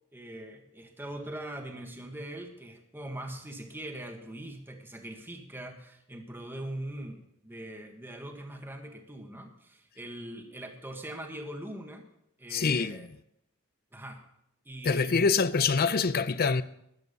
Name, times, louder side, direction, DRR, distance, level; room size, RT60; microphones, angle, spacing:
voice 1, 0.1-12.1 12.4-13.1 13.9-14.2 14.6-15.2, right 1 dB, 10° right, 1.6 m, -42 dB
voice 2, 12.5-13.1 14.8-16.6, left 5 dB, 45° left, 0.6 m, -25 dB
13.5 x 11.0 x 5.3 m
head